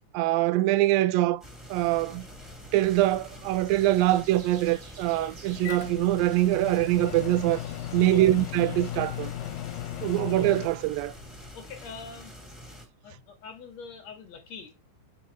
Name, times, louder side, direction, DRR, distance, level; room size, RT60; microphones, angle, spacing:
voice 1, 0.1-1.4 1.7-2.3 2.7-7.6 7.9-9.3 10.0-11.1, right 16 dB, 90° right, 2.3 m, -24 dB
sound 1, 1.4-12.8, equal, ahead, 1.3 m, -46 dB
sound 2, 1.8-11.5, right 1 dB, 65° right, 3.0 m, -52 dB
Microwave oven, 5.6-10.7, left 10 dB, 85° left, 2.3 m, -36 dB
voice 2, 11.5-12.4 13.0-14.8, left 5 dB, 60° left, 2.1 m, -43 dB
7.1 x 4.6 x 4.0 m
omnidirectional pair, 4.0 m